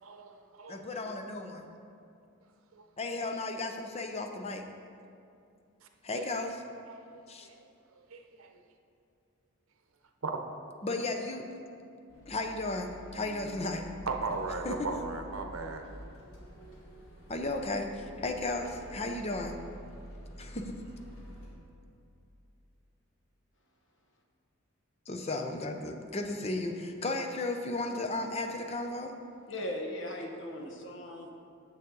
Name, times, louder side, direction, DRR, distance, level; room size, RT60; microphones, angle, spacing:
voice 1, 0.0-0.9 2.7-2.9 6.1-6.2 6.8-7.6 8.1-8.6 10.2-10.4 14.1-16.0, right 3 dB, 85° right, 5 dB, 0.8 m, -37 dB
voice 2, 0.7-1.6 3.0-4.7 6.0-6.6 7.3-7.5 10.8-11.5 12.3-13.9 14.6-14.9 17.3-19.6 20.4-20.8 25.1-29.1, left 2 dB, 30° left, 5 dB, 0.6 m, -34 dB
sound 1, 12.1-21.5, equal, 85° left, 1.6 m, -48 dB
voice 3, 29.5-31.3, left 1 dB, 60° left, 1 dB, 1.1 m, -38 dB
9.3 x 7.0 x 3.9 m, 2.5 s
head